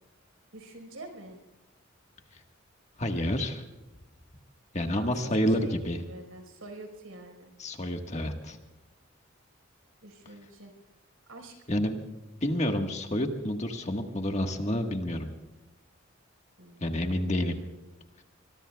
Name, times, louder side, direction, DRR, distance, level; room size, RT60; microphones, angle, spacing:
voice 1, 0.5-1.4 4.9-7.5 10.0-10.7 11.3-11.9 16.6-16.9, right 2 dB, 85° right, 3 dB, 4.6 m, -46 dB
voice 2, 3.0-3.6 4.7-6.0 7.6-8.6 11.7-12.0 12.4-15.3 16.8-17.5, equal, 35° left, 4 dB, 1.5 m, -29 dB
25.0 x 22.0 x 2.3 m, 1.0 s
head